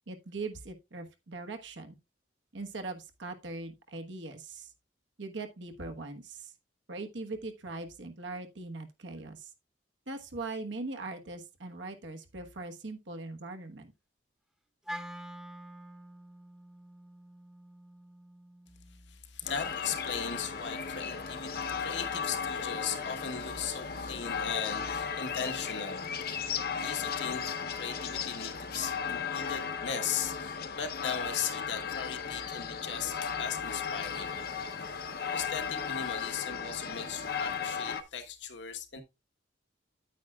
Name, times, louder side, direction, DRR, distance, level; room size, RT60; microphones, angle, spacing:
voice 1, 0.1-2.0 2.5-4.7 5.2-6.5 6.9-9.5 10.1-13.9, right 3 dB, 80° right, 1.2 m, -41 dB
Wind instrument woodwind instrument, 14.9-19.1, equal, 5° right, 0.8 m, -46 dB
voice 2, 19.1-39.0, left 7 dB, 70° left, 1.2 m, -38 dB
sound 1, 19.5-38.0, left 6 dB, 55° left, 0.7 m, -36 dB
9.1 x 8.8 x 2.3 m
head